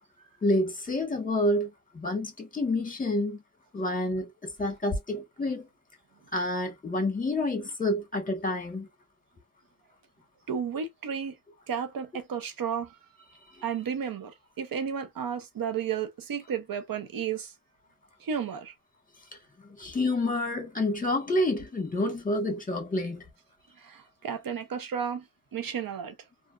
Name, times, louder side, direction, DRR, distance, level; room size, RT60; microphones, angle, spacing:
voice 1, 0.4-3.4 3.7-5.7 6.3-8.9 19.7-23.2, left 1 dB, 25° left, 1.4 m, -28 dB
voice 2, 10.5-11.4 11.7-13.0 13.6-17.5 18.2-18.7 23.8-26.2, right 7 dB, 85° right, 0.7 m, -33 dB
3.3 x 2.7 x 2.4 m
wide cardioid pair, 90°, 34 cm